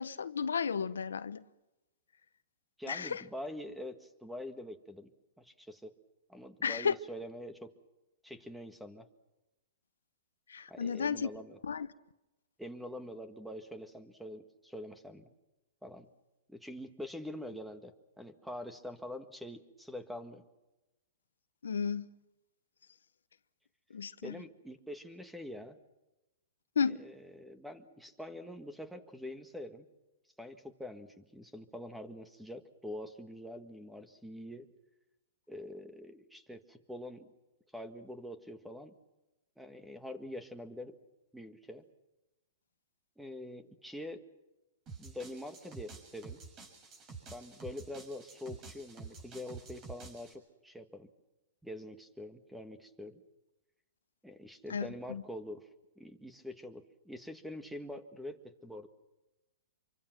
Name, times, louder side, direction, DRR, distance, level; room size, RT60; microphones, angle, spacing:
voice 1, 0.0-1.4 2.9-3.2 6.6-7.0 10.5-11.3 11.7-11.9 21.6-22.1 23.9-24.3 26.8-27.0 54.7-55.2, left 6 dB, 90° left, 1.0 m, -33 dB
voice 2, 2.8-5.1 5.4-5.9 6.3-7.7 8.2-9.1 10.7-11.6 12.6-15.3 15.8-16.1 16.5-20.4 24.2-25.8 26.9-29.9 30.4-34.7 35.5-37.3 37.7-38.9 39.6-41.0 41.3-41.8 43.2-44.2 45.0-46.4 47.3-51.1 51.6-53.2 54.2-55.7 56.0-58.9, left 1 dB, ahead, 1.8 m, -45 dB
sound 1, 44.9-50.3, right 4 dB, 30° right, 7.0 m, -49 dB
26.5 x 24.0 x 6.1 m
hypercardioid pair, 135°, 0 cm